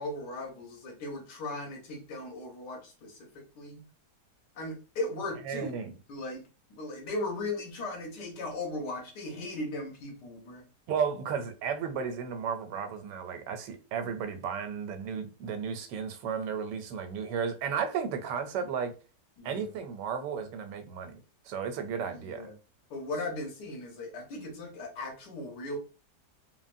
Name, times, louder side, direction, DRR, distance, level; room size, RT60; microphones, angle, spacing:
voice 1, 0.0-3.8 4.6-5.8 6.1-6.4 6.7-10.6 19.4-19.7 22.0-22.5 22.9-25.8, left 2 dB, 80° left, 1.4 m, -37 dB
voice 2, 5.4-6.0 10.9-18.9 19.4-21.2 21.5-22.5, right 6 dB, 85° right, 1.2 m, -34 dB
3.4 x 2.0 x 2.5 m
omnidirectional pair, 1.8 m